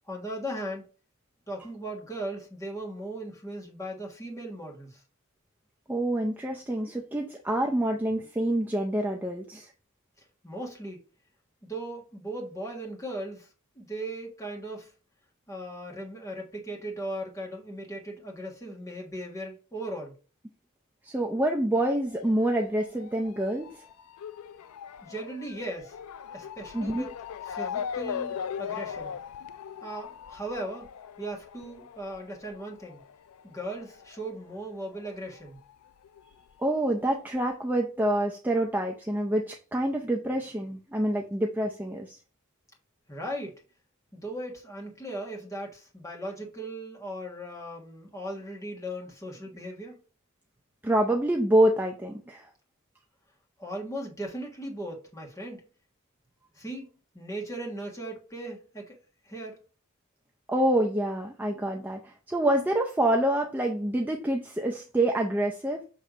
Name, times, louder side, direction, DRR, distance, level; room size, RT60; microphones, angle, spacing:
voice 1, 0.1-0.9 1.5-5.0 10.2-11.0 11.6-13.5 13.7-14.9 15.5-20.2 25.0-26.0 26.3-27.1 27.4-29.1 29.8-30.9 31.2-33.0 33.4-35.6 43.1-43.5 44.1-50.0 53.6-55.6 56.5-59.0 59.2-59.6, right 1 dB, 15° left, 1.5 m, -38 dB
voice 2, 5.9-9.7 21.0-23.8 26.7-27.1 36.6-42.2 50.8-52.5 60.5-65.8, right 1 dB, 10° right, 0.5 m, -27 dB
Motor vehicle (road) / Siren, 22.1-35.1 35.3-36.5 37.2-37.3 37.5-37.6, left 7 dB, 85° left, 0.4 m, -40 dB
6.6 x 3.2 x 4.9 m
head